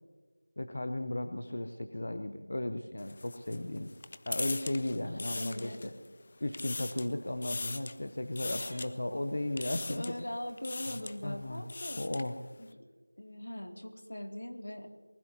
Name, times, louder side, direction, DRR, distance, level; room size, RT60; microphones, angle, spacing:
voice 1, 0.6-3.9 4.3-5.9 6.4-10.3 10.9-11.6 12.0-12.4, left 1 dB, 45° left, 8 dB, 0.7 m, -35 dB
sound 1, 3.0-6.1 6.4-7.1 7.4-8.0 8.4-8.9 9.6-10.2 10.6-11.2 11.5-12.3, left 3 dB, 25° left, 0.4 m, -39 dB
voice 2, 5.4-6.1 8.5-8.9 9.6-12.0 12.6-12.7 13.2-14.9, left 1 dB, 85° left, 4 dB, 2.4 m, -41 dB
24.5 x 20.0 x 2.8 m, 1.5 s
figure-of-eight pair, 180°, 0 cm